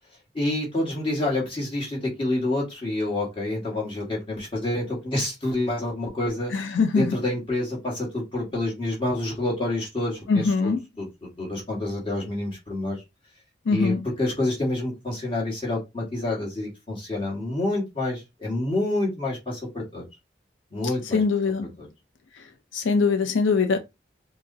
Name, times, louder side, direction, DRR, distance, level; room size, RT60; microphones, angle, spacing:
voice 1, 0.3-6.5 6.9-13.0 13.7-20.0 20.7-21.2 21.8-21.9, left 1 dB, 30° left, 1.4 m, -28 dB
voice 2, 6.5-7.2 10.3-10.8 13.7-14.1 21.0-21.7 22.4-22.5 22.7-23.8, left 4 dB, 85° left, 0.5 m, -22 dB
4.6 x 2.0 x 2.6 m
head